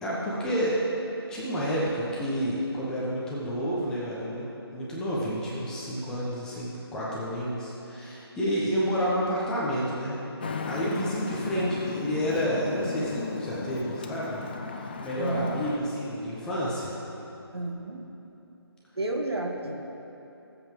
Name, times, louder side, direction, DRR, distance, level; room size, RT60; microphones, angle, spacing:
voice 1, 0.0-0.8 1.3-4.4 4.7-10.2 10.7-14.4 15.0-16.9, equal, 5° left, -7 dB, 1.1 m, -29 dB
Traffic noise roadway noise, 10.4-15.8, left 4 dB, 20° left, 0.4 m, -35 dB
voice 2, 10.9-11.7 15.2-15.6 17.5-18.0 19.0-19.7, right 2 dB, 70° right, 2 dB, 1.5 m, -32 dB
18.5 x 8.0 x 3.9 m, 3.0 s
figure-of-eight pair, 150°, 14 cm